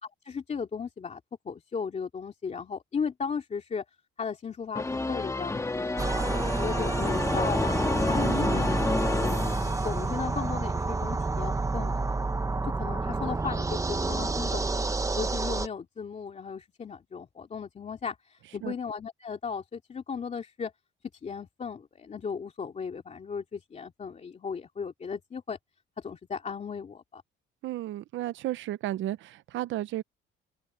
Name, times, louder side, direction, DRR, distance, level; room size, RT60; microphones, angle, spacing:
voice 1, 0.0-3.8 4.2-7.8 8.1-8.7 9.0-9.4 9.8-12.0 12.6-14.8 15.2-20.7 21.2-25.6 26.0-27.2, left 6 dB, 30° left, 2.6 m, -36 dB
sound 1, 4.7-10.4, left 2 dB, 15° left, 1.5 m, -30 dB
sound 2, 6.0-15.7, right 3 dB, 15° right, 1.0 m, -29 dB
voice 2, 8.2-8.7 18.6-18.7 27.6-30.0, right 14 dB, 65° right, 0.7 m, -33 dB
cardioid pair, 120°, 21 cm